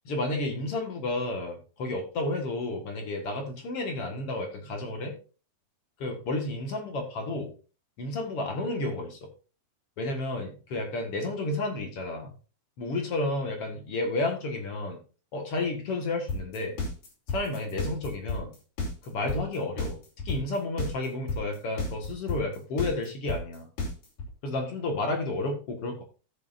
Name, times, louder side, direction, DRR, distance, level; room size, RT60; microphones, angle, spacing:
voice 1, 0.1-5.1 6.0-7.5 8.0-9.2 10.0-12.3 12.8-15.0 15.3-16.8 17.3-18.5 19.0-20.0 20.3-23.7 24.4-26.0, left 2 dB, 50° left, 3 dB, 2.1 m, -31 dB
sound 1, 16.3-24.3, left 2 dB, 70° left, 4.8 m, -31 dB
17.0 x 6.7 x 2.6 m, 0.35 s
omnidirectional pair, 4.2 m